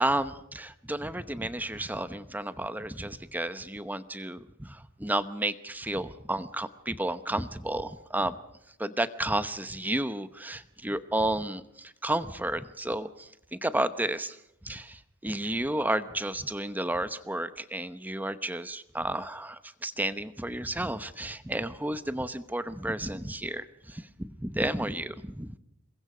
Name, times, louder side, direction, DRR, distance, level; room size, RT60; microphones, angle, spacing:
voice 1, 0.0-8.4 8.8-14.4 14.6-25.6, right 1 dB, 10° right, 12 dB, 0.9 m, -32 dB
28.0 x 22.5 x 5.1 m, 0.81 s
head